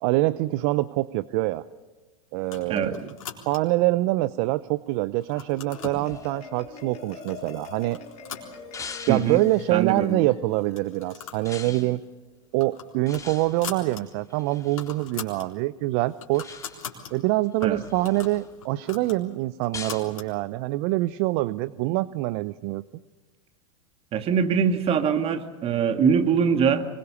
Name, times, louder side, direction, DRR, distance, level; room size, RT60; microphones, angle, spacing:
voice 1, 0.0-1.6 2.3-3.0 3.5-8.0 9.1-12.0 12.5-16.6 17.1-22.8, right 19 dB, 55° right, 17 dB, 0.6 m, -25 dB
sound 1, 2.4-3.9 4.4-4.9 5.2-6.1 6.8-6.9 7.3-7.5 7.9-9.1 9.5-9.6 9.8-9.9 10.6-11.5 11.8-12.0 12.4-14.0 14.4-14.5 14.7-15.5 15.9-17.1 17.6-20.3, left 7 dB, 85° left, 3.9 m, -40 dB
sound 2, 5.3-8.0 8.7-9.7 11.5-12.0 13.1-14.9 16.3-17.0 17.5-18.5 19.7-20.1, left 5 dB, 20° left, 2.4 m, -43 dB
Marimba xylophone, 5.4-12.0, left 5 dB, 40° left, 4.6 m, -44 dB
voice 2, 9.1-9.4 9.7-10.3 17.6-17.8 24.1-26.9, right 7 dB, 35° right, 8 dB, 2.1 m, -23 dB
24.5 x 22.0 x 7.0 m, 1.2 s
hypercardioid pair, 105°, 17 cm